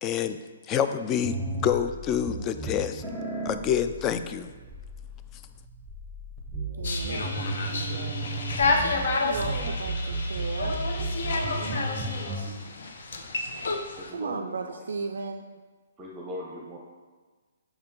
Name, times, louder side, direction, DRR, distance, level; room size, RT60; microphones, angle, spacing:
voice 1, 0.0-0.4 0.7-1.4 1.6-3.0 3.4-4.5, left 9 dB, 25° left, 10 dB, 0.3 m, -27 dB
sound 1, 1.2-12.5, right 2 dB, ahead, 1.1 m, -34 dB
sound 2, 6.8-14.1, left 3 dB, 65° left, 0.7 m, -30 dB
voice 2, 6.8-8.3 9.2-10.8 11.1-11.9 14.1-15.4, right 4 dB, 75° right, 6 dB, 0.3 m, -36 dB
voice 3, 14.0-14.9 16.0-16.8, equal, 20° right, -2 dB, 0.7 m, -39 dB
5.7 x 4.3 x 3.8 m, 1.4 s
hypercardioid pair, 135°, 0 cm